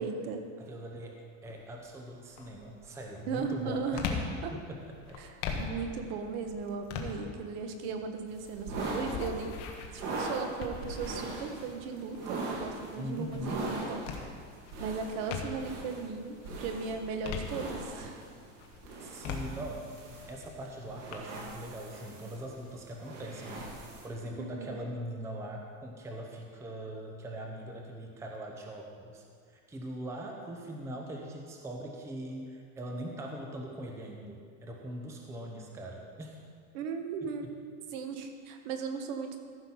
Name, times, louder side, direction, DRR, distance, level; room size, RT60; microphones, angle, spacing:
voice 1, 0.0-0.4 3.3-4.1 4.4-4.5 5.2-5.3 5.6-9.6 9.9-14.3 14.8-18.2 24.4-24.8 36.7-37.6 37.9-39.4, right 5 dB, 60° right, 6 dB, 1.2 m, -37 dB
voice 2, 0.6-4.2 4.5-5.2 13.0-13.7 19.0-19.9 20.3-23.7 24.0-36.4, right 1 dB, 10° right, 1 dB, 0.6 m, -41 dB
sound 1, 1.4-1.8 2.3-15.8 16.3-18.1 18.6-21.1, left 6 dB, 50° left, 1.3 m, -42 dB
sound 2, 8.3-24.1, right 2 dB, 85° right, 2.8 m, -41 dB
14.0 x 5.9 x 5.5 m, 2.2 s
supercardioid pair, 160°, 35 cm